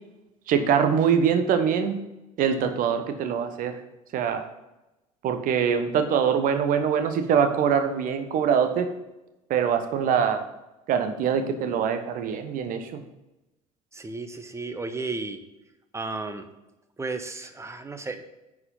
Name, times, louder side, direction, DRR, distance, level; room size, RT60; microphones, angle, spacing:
voice 1, 0.5-2.0 2.4-3.8 4.1-4.4 5.2-8.9 9.5-10.5 10.9-13.0, right 7 dB, 45° right, 8 dB, 1.2 m, -23 dB
voice 2, 13.9-15.4 15.9-16.4 17.0-18.2, right 3 dB, 15° right, 8 dB, 1.0 m, -33 dB
9.8 x 4.9 x 5.6 m, 0.98 s
figure-of-eight pair, 65°, 19 cm